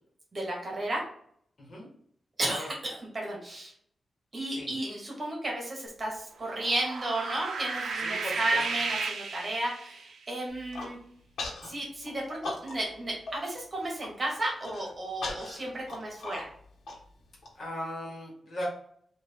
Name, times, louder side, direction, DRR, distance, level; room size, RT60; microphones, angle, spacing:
voice 1, 0.3-1.0 2.4-3.7 4.3-11.0 11.6-16.5, right 1 dB, 30° right, -2 dB, 1.3 m, -33 dB
sound 1, 6.4-10.2, right 4 dB, 80° right, 0.5 m, -34 dB
voice 2, 7.9-8.8 17.5-18.7, left 1 dB, 50° left, -3 dB, 1.4 m, -38 dB
Human voice, 10.5-10.9 11.4-11.7 12.0-13.0 13.3-13.4 13.7-14.1 14.6-17.5, left 3 dB, 90° left, 1.1 m, -38 dB
3.5 x 2.5 x 3.5 m, 0.63 s
wide cardioid pair, 125°, 0 cm